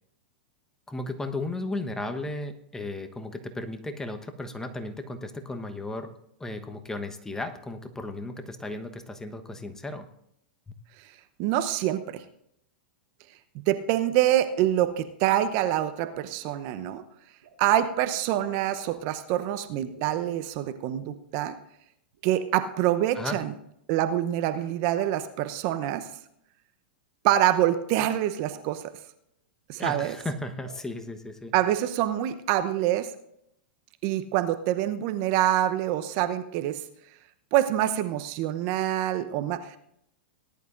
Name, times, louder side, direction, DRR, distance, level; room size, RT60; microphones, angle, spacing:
voice 1, 0.9-6.1 6.4-10.1 23.1-23.4 29.8-31.5, left 2 dB, 10° left, 7 dB, 1.1 m, -35 dB
voice 2, 11.4-12.2 13.7-17.0 17.6-21.6 22.2-23.5 23.9-26.1 27.2-28.8 29.7-30.1 31.5-33.1 34.0-36.8 37.5-39.8, right 12 dB, 50° right, 10 dB, 0.8 m, -26 dB
sound 1, 16.0-16.4 17.4-17.6 18.2-19.1 19.8-20.2 22.1-22.9 24.5-24.7 25.9-26.1 27.3-27.4 27.7-27.8 28.1-28.2 28.4-28.8 29.6-30.3 30.6-30.9, right 5 dB, 70° right, 4.7 m, -50 dB
18.5 x 11.0 x 2.6 m, 0.76 s
hypercardioid pair, 105°, 5 cm